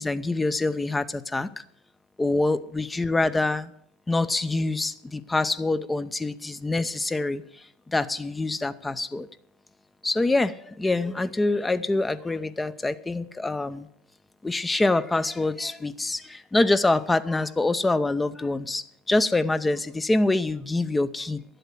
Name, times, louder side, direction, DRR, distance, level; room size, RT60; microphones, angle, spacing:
voice 1, 0.0-1.6 2.2-3.7 4.1-7.4 7.9-9.3 10.0-13.9 14.4-21.4, left 2 dB, 10° left, 14 dB, 0.7 m, -25 dB
11.5 x 7.9 x 8.3 m, 0.71 s
hypercardioid pair, 95°, 0 cm